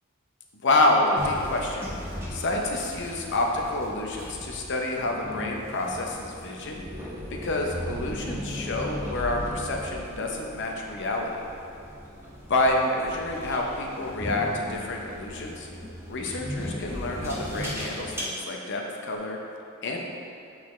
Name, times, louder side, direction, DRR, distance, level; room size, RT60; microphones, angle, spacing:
voice 1, 0.6-1.9 2.3-6.8 7.4-11.4 12.5-15.7 16.1-19.4 19.8-20.0, left 2 dB, 55° left, 1 dB, 0.7 m, -28 dB
sound 1, 1.2-18.2, equal, 10° right, 0.9 m, -37 dB
8.3 x 4.0 x 3.1 m, 2.6 s
head